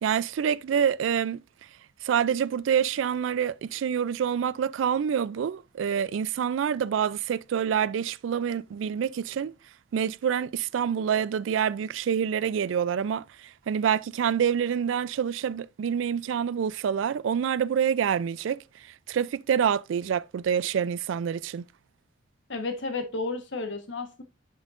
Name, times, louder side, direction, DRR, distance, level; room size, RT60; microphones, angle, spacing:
voice 1, 0.0-1.4 2.0-9.5 9.9-18.6 19.1-21.6, right 8 dB, 85° right, 0.3 m, -27 dB
voice 2, 22.5-24.2, left 3 dB, 75° left, 1.3 m, -32 dB
10.5 x 5.5 x 2.5 m
head